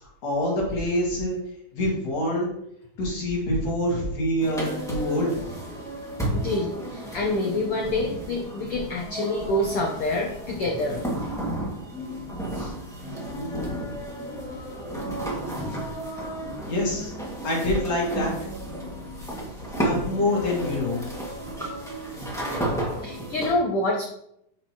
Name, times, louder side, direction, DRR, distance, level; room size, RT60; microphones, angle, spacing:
voice 1, 0.0-1.4 1.7-2.5 3.0-5.4 12.5-12.7 13.4-13.9 16.7-17.1 17.4-18.4 19.8-21.1, left 1 dB, 50° left, -4 dB, 3.1 m, -26 dB
sound 1, 4.4-23.5, right 1 dB, 5° left, 0.6 m, -33 dB
voice 2, 6.3-11.0 23.0-24.0, left 1 dB, 85° left, 1 dB, 1.2 m, -26 dB
9.2 x 6.0 x 2.9 m, 0.76 s
omnidirectional pair, 3.8 m